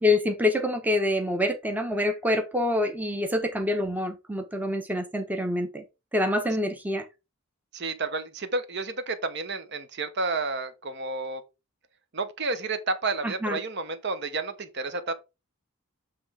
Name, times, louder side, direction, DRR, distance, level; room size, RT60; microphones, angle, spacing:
voice 1, 0.0-5.8 6.1-7.0 13.2-13.6, left 1 dB, 10° right, 0.8 m, -26 dB
voice 2, 7.7-11.4 12.1-15.1, right 3 dB, 50° right, 0.9 m, -31 dB
7.7 x 3.3 x 4.9 m
head